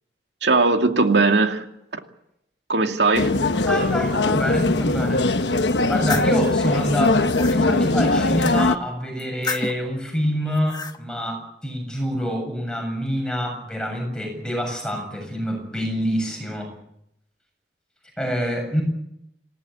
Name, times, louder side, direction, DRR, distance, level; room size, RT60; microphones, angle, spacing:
voice 1, 0.4-1.6 2.7-3.3, right 3 dB, 85° right, 2.4 m, -19 dB
sound 1, 3.1-8.8, left 2 dB, 85° left, 1.2 m, -21 dB
voice 2, 3.7-5.3 5.9-16.7 18.2-18.8, equal, 5° left, 7.6 m, -26 dB
sound 2, 5.7-6.4 7.0-7.6 9.2-9.9 10.5-11.0, left 4 dB, 25° left, 1.2 m, -31 dB
27.5 x 17.0 x 8.6 m
head